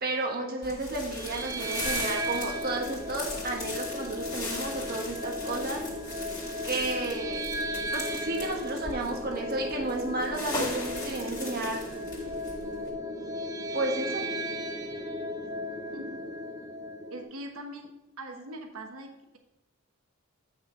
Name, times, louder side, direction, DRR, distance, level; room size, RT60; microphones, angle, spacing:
voice 1, 0.0-5.8 6.6-7.4 7.9-11.8 13.7-14.3, right 2 dB, 45° right, 1 dB, 1.2 m, -32 dB
sound 1, 0.6-12.9, left 2 dB, 20° left, 2.1 m, -39 dB
sound 2, 1.1-17.2, equal, 15° right, 0.8 m, -35 dB
voice 2, 17.1-17.9 18.2-19.4, right 1 dB, 90° right, 3 dB, 1.2 m, -41 dB
9.0 x 5.7 x 3.8 m, 0.99 s
head